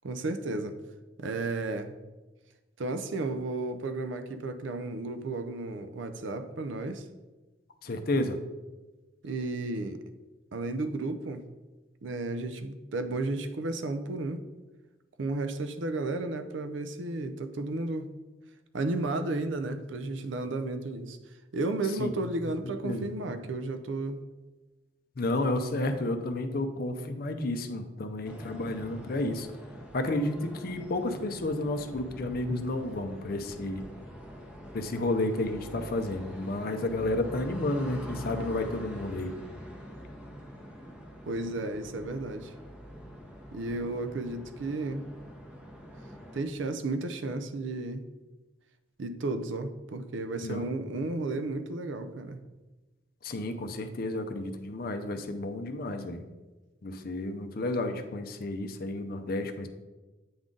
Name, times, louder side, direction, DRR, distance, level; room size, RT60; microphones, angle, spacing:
voice 1, 0.0-0.8 1.2-1.9 2.8-7.0 9.2-10.0 10.5-11.4 12.0-14.4 15.2-18.1 18.7-21.2 21.5-24.2 41.3-42.5 43.5-45.0 46.3-48.0 49.0-52.4, right 2 dB, 70° right, 9 dB, 0.5 m, -33 dB
voice 2, 7.8-8.4 22.0-22.1 22.8-23.1 25.2-29.5 29.9-33.8 34.7-39.3 50.4-50.7 53.2-56.3 56.8-59.7, left 2 dB, 50° left, 7 dB, 0.5 m, -31 dB
sound 1, 28.2-46.4, equal, 5° right, 0.7 m, -45 dB
8.7 x 3.8 x 3.7 m, 1.2 s
head